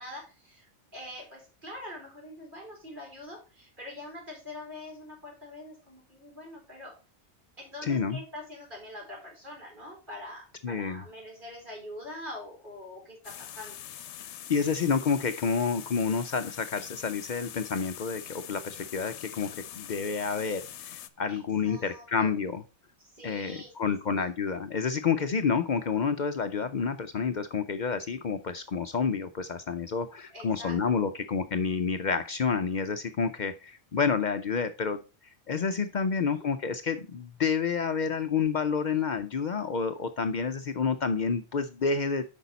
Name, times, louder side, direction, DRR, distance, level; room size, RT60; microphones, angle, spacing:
voice 1, 0.0-6.9 7.6-13.8 14.5-14.6 21.3-22.3 23.0-24.3 30.3-31.0 35.9-36.4, left 1 dB, 45° right, -2 dB, 4.4 m, -44 dB
voice 2, 7.8-8.2 10.6-11.0 14.5-19.5 19.8-20.7 21.2-22.6 23.2-35.0 35.5-42.2, left 5 dB, 55° left, 10 dB, 0.6 m, -29 dB
sound 1, 13.2-21.1, left 11 dB, 90° left, 0.9 m, -43 dB
8.3 x 5.4 x 4.0 m, 0.33 s
omnidirectional pair, 1.2 m